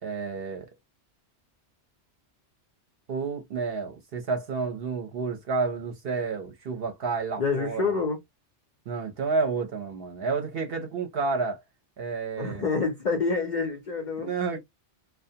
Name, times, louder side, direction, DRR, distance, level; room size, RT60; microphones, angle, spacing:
voice 1, 0.0-0.7 3.1-7.9 8.9-11.6 12.0-12.6 14.2-14.6, right 4 dB, 60° right, 0.8 m, -30 dB
voice 2, 7.4-8.2 12.4-14.3, left 4 dB, 50° left, 0.6 m, -27 dB
2.3 x 2.2 x 2.7 m
omnidirectional pair, 1.2 m